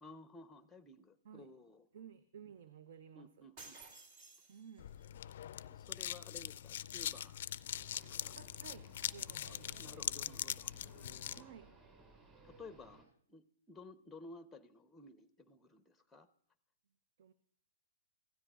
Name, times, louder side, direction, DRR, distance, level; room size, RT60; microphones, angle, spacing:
voice 1, 0.0-1.9 3.1-3.8 5.1-5.2 5.7-7.4 8.0-8.4 9.3-11.7 12.4-16.3, left 3 dB, 5° left, 11 dB, 0.7 m, -56 dB
voice 2, 1.9-3.3 4.5-4.9 8.4-10.3 11.4-11.7 17.2-17.3, right 8 dB, 60° right, 12 dB, 0.6 m, -55 dB
sound 1, 3.6-5.0, right 3 dB, 45° right, 2.1 m, -55 dB
sound 2, 4.8-11.4, left 11 dB, 60° left, 0.4 m, -42 dB
sound 3, 7.7-13.0, right 3 dB, 25° right, 5.7 m, -61 dB
16.0 x 13.0 x 2.4 m, 0.63 s
hypercardioid pair, 125°, 0 cm